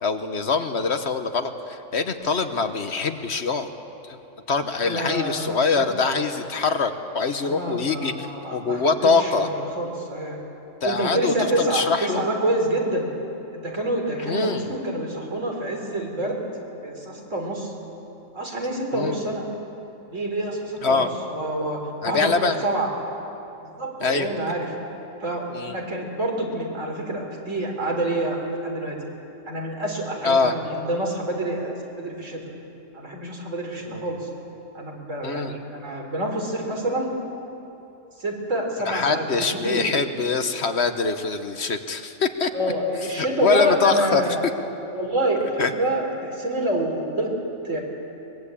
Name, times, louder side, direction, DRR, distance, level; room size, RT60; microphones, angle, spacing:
voice 1, 0.0-3.7 4.0-4.2 4.5-9.5 10.8-12.2 14.2-14.7 18.9-19.2 20.8-21.1 22.0-22.6 24.0-24.3 25.5-25.8 30.2-30.6 33.9-34.0 35.2-35.5 38.8-42.7 43.2-44.3 45.6-45.7, left 4 dB, 60° left, 8 dB, 1.4 m, -24 dB
voice 2, 4.8-5.9 7.4-10.4 10.8-13.1 13.5-16.4 16.8-17.7 18.3-19.4 20.1-22.3 22.6-22.9 23.6-24.7 25.2-29.0 29.5-32.4 32.9-34.3 34.7-37.1 38.2-39.9 42.5-44.4 44.9-47.3 47.6-47.8, right 1 dB, 75° right, 0 dB, 4.2 m, -27 dB
23.5 x 21.0 x 8.5 m, 2.9 s
omnidirectional pair, 1.3 m